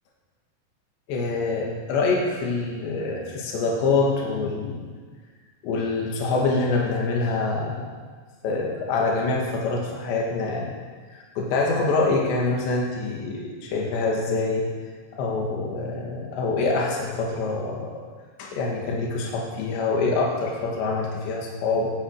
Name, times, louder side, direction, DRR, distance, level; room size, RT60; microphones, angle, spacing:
voice 1, 1.1-4.9 5.6-7.9 8.4-10.7 11.1-14.7 15.1-17.9 18.4-21.9, left 3 dB, 75° left, -2 dB, 4.3 m, -25 dB
18.0 x 14.5 x 4.9 m, 1.5 s
omnidirectional pair, 5.1 m